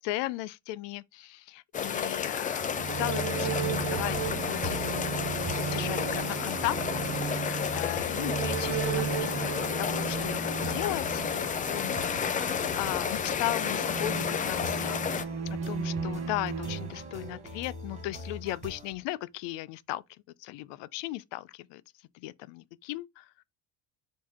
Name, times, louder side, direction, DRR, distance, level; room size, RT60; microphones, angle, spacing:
voice 1, 0.0-5.1 5.7-15.2 15.5-20.0 20.4-21.8 22.1-23.3, left 17 dB, 75° left, 0.5 m, -37 dB
sound 1, 1.7-15.2, left 7 dB, 20° left, 0.3 m, -31 dB
sound 2, 2.5-17.7, right 6 dB, 35° right, 0.7 m, -35 dB
sound 3, 3.5-18.9, right 1 dB, 15° right, 1.5 m, -43 dB
4.5 x 2.8 x 4.2 m
cardioid pair, 100°, 43 cm